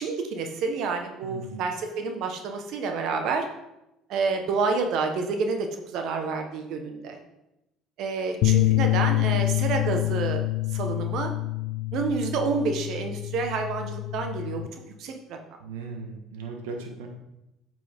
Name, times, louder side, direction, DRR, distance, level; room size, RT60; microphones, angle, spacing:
voice 1, 0.0-3.4 4.1-7.2 8.0-10.4 10.7-11.3 11.9-14.7 15.0-15.4, right 4 dB, 65° right, 4 dB, 1.2 m, -29 dB
voice 2, 1.2-1.6 15.6-17.1, right 4 dB, 85° right, 3 dB, 1.5 m, -37 dB
sound 1, 8.4-14.7, left 19 dB, 70° left, 0.4 m, -26 dB
8.6 x 6.8 x 3.6 m, 0.91 s
hypercardioid pair, 75°, 0 cm